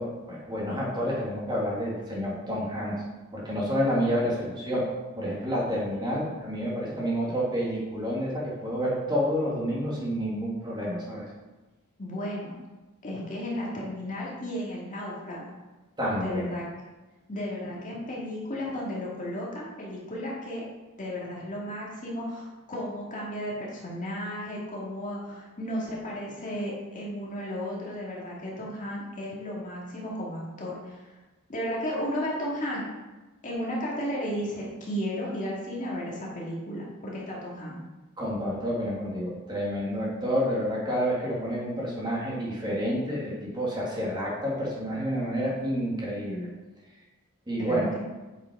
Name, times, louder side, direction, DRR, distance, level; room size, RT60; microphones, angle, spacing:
voice 1, 0.0-3.0 3.3-4.8 5.2-11.2 16.0-16.5 38.2-46.5 47.5-47.9, equal, 20° right, -5 dB, 2.0 m, -29 dB
voice 2, 12.0-12.5 13.0-15.5 16.2-16.6 17.3-20.6 21.0-31.0 31.5-32.8 33.4-37.8 47.6-48.0, equal, 35° left, -4 dB, 2.0 m, -34 dB
8.0 x 5.7 x 4.8 m, 1.2 s
head